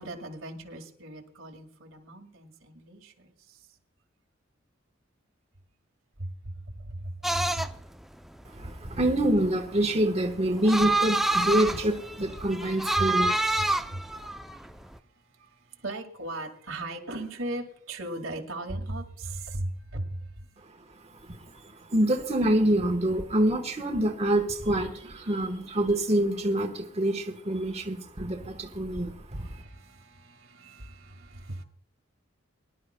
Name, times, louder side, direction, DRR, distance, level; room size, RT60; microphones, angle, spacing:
voice 1, 0.0-3.6 6.2-7.7 13.0-13.1 13.6-14.1 14.5-20.5 29.3-31.6, right 1 dB, 90° right, 2.0 m, -38 dB
sound 1, 7.2-15.0, right 2 dB, ahead, 0.4 m, -28 dB
voice 2, 8.5-13.3 21.3-29.5, right 1 dB, 30° right, 1.2 m, -26 dB
24.0 x 11.5 x 2.2 m
head